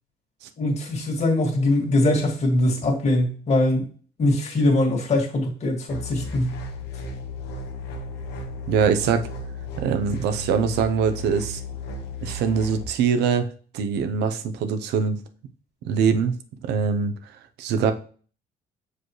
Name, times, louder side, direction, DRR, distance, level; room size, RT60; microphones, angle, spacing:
voice 1, 0.6-3.9 4.2-6.6, left 1 dB, 40° left, 0 dB, 2.0 m, -22 dB
sound 1, 5.9-12.8, left 2 dB, 80° left, 1.2 m, -34 dB
voice 2, 8.7-9.3 9.8-11.6 12.2-13.5 13.7-15.2 15.8-16.4 16.6-17.3 17.6-17.9, right 6 dB, 85° right, 9 dB, 0.7 m, -23 dB
6.4 x 4.9 x 3.1 m, 0.41 s
cardioid pair, 110°, 17 cm